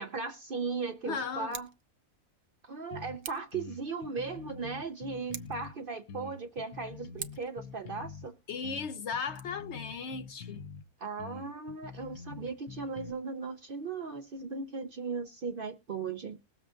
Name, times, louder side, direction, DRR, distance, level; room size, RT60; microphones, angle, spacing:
voice 1, 0.0-1.7 2.6-8.3 11.0-16.4, right 4 dB, 50° right, 0.7 m, -37 dB
voice 2, 1.0-1.6 8.5-10.6, left 5 dB, 60° left, 0.9 m, -36 dB
Scissors, 1.4-1.8 3.2-3.6 5.2-5.7 7.2-7.6 9.2-9.4, right 8 dB, 70° right, 1.2 m, -44 dB
sound 1, 2.9-3.2 3.5-5.7 6.1-8.3 8.6-10.8 11.2-13.1, left 5 dB, 80° left, 1.2 m, -45 dB
20.5 x 7.6 x 2.5 m
omnidirectional pair, 1.5 m